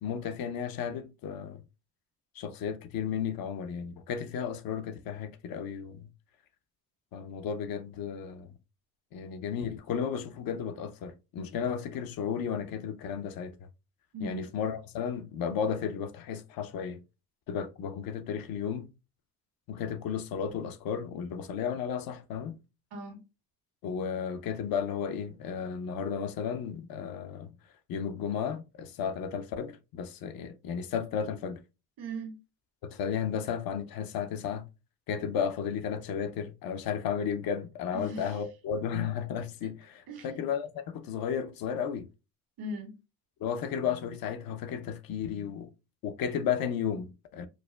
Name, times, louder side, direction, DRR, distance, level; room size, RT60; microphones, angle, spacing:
voice 1, 0.0-1.6 2.3-6.1 7.1-8.5 9.1-13.6 14.2-17.0 17.5-18.9 19.7-22.6 23.8-27.6 27.9-31.6 32.8-34.7 35.1-42.1 43.4-45.7 46.0-47.5, left 7 dB, 65° left, 0.6 m, -33 dB
voice 2, 14.1-14.5 22.9-23.2 32.0-32.4 37.9-38.4 40.1-40.4 42.6-43.0, right 1 dB, 75° right, 1.5 m, -39 dB
4.7 x 2.1 x 2.2 m
cardioid pair, 120°, 38 cm